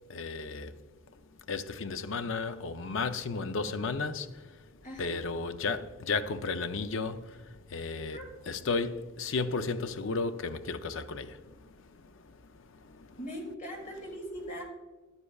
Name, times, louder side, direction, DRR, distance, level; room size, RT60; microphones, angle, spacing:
voice 1, 0.1-0.8 1.1-1.2 1.5-4.6 5.0-8.2 8.5-13.2, left 4 dB, 60° left, 0.5 m, -34 dB
voice 2, 13.2-14.6, equal, 35° left, 2.3 m, -40 dB
11.5 x 9.7 x 2.3 m
head